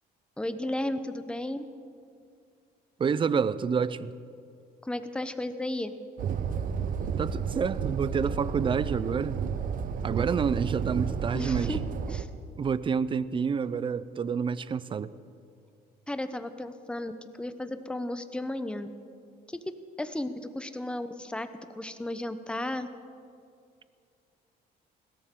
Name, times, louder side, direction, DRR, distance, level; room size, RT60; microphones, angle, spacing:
voice 1, 0.4-1.7 4.8-5.9 10.2-10.3 11.3-11.8 12.1-12.3 16.1-18.9 19.5-21.5 21.8-22.9, left 1 dB, 5° left, 0.9 m, -34 dB
voice 2, 3.0-4.1 7.2-9.4 10.0-11.8 12.6-15.1, right 6 dB, 30° right, 0.5 m, -28 dB
sound 1, 6.2-12.2, right 7 dB, 55° right, 0.9 m, -31 dB
21.0 x 17.0 x 3.8 m
cardioid pair, 110°, 17 cm